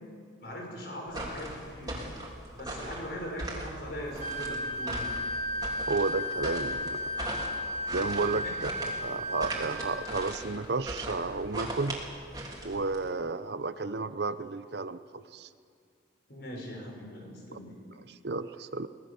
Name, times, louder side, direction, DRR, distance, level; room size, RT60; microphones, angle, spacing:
voice 1, 0.4-2.0 2.5-5.1 8.4-8.5 16.3-17.8, equal, 55° left, 0 dB, 6.3 m, -40 dB
sound 1, 1.1-13.1, right 1 dB, 20° right, 3.3 m, -39 dB
Wind instrument woodwind instrument, 4.2-10.3, left 1 dB, 35° right, 3.1 m, -34 dB
voice 2, 5.9-7.1 7.9-8.7 9.0-12.0 12.6-15.5 17.5-17.6 18.1-18.9, right 3 dB, 60° right, 13 dB, 0.7 m, -32 dB
24.0 x 18.5 x 7.1 m, 2.3 s
head